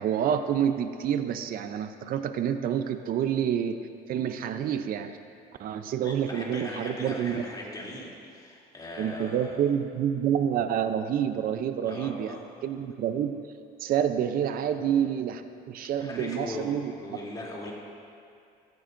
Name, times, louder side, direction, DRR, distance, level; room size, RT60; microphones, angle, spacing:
voice 1, 0.0-3.8 4.1-5.2 5.6-7.4 9.0-13.5 13.8-16.9, right 9 dB, 60° right, 9 dB, 0.6 m, -28 dB
voice 2, 6.0-9.7 11.8-12.4 14.6-14.8 16.0-17.7, left 2 dB, 25° left, -4 dB, 2.8 m, -39 dB
15.5 x 14.0 x 2.6 m, 2.4 s
cardioid pair, 110°, 17 cm